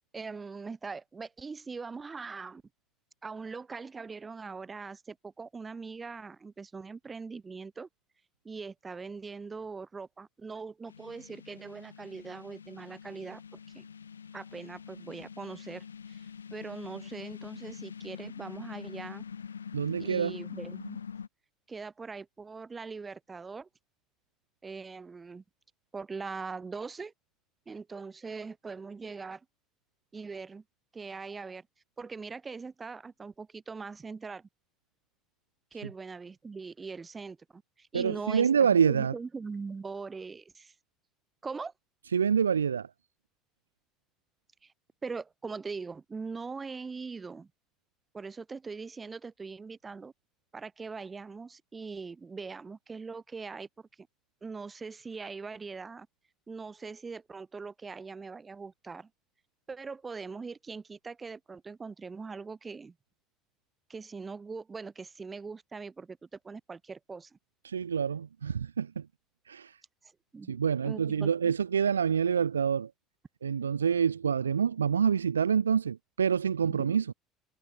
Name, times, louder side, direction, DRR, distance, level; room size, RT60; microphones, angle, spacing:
voice 1, 0.1-2.6 3.2-7.9 8.4-13.9 14.3-19.2 20.0-21.0 21.7-23.7 24.6-25.4 25.9-27.1 27.7-29.4 30.1-30.6 30.9-31.7 32.0-34.5 35.7-40.7 41.4-41.7 44.6-44.7 45.0-47.5 48.1-50.1 50.5-54.1 54.4-56.1 56.5-59.1 59.7-62.9 63.9-67.4 70.0-70.6 70.8-71.5, right 4 dB, 25° right, 6.3 m, -41 dB
sound 1, 10.9-21.3, left 7 dB, 80° left, 8.0 m, -45 dB
voice 2, 19.7-20.4 37.9-39.1 42.1-42.9 67.6-69.0 69.5-69.7 70.5-72.9 73.4-77.0, right 7 dB, 80° right, 1.0 m, -27 dB
figure-of-eight pair, 60°, 0 cm